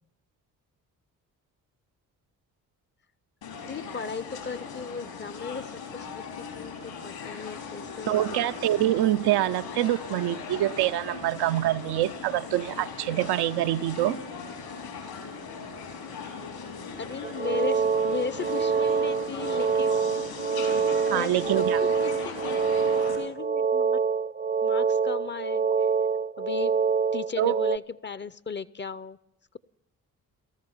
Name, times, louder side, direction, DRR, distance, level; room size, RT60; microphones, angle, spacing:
sound 1, 3.4-23.2, left 5 dB, 75° left, 4.4 m, -39 dB
voice 1, 3.7-8.5 17.0-20.0 21.0-24.0 24.6-25.7 26.4-26.8 27.1-29.2, left 5 dB, 25° left, 0.7 m, -36 dB
voice 2, 8.1-14.2 21.1-21.8 27.4-27.5, right 14 dB, 65° right, 0.5 m, -25 dB
sound 2, 17.2-27.8, right 5 dB, 20° right, 0.6 m, -26 dB
18.0 x 14.0 x 5.6 m
hypercardioid pair, 45°, 43 cm